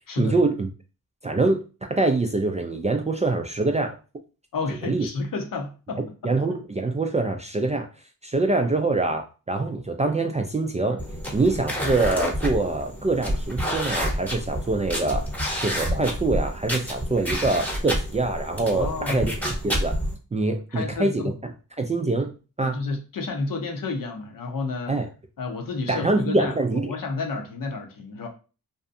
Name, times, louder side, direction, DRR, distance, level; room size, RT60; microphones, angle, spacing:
voice 1, 0.2-0.7 1.2-4.0 4.8-5.1 6.2-7.9 8.2-11.0 11.3-15.3 15.6-20.0 20.3-21.3 21.8-22.8 24.9-25.1 25.9-26.9, right 2 dB, 20° right, 0.3 m, -24 dB
voice 2, 4.5-6.3 18.7-19.2 20.7-21.3 22.6-25.0 25.4-28.3, left 3 dB, 60° left, 0.8 m, -30 dB
sound 1, 11.0-20.1, equal, 5° left, 0.9 m, -29 dB
2.6 x 2.2 x 2.5 m
cardioid pair, 50°, 37 cm